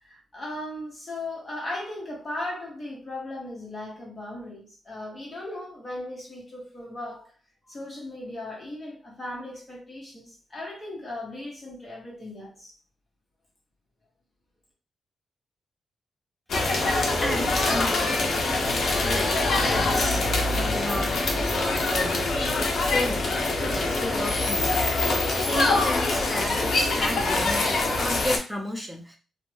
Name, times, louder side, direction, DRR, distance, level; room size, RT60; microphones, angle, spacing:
voice 1, 0.0-7.3 7.6-12.7 27.5-28.0, left 1 dB, 25° left, 0.9 m, -37 dB
sound 1, 16.5-28.4, left 2 dB, 55° left, 0.5 m, -24 dB
voice 2, 17.2-18.1 19.0-19.4 19.6-20.2 20.7-21.2 21.5-22.3 22.7-23.3 23.7-24.9 25.4-29.2, equal, ahead, 0.5 m, -32 dB
2.6 x 2.1 x 3.1 m
wide cardioid pair, 165°, 0 cm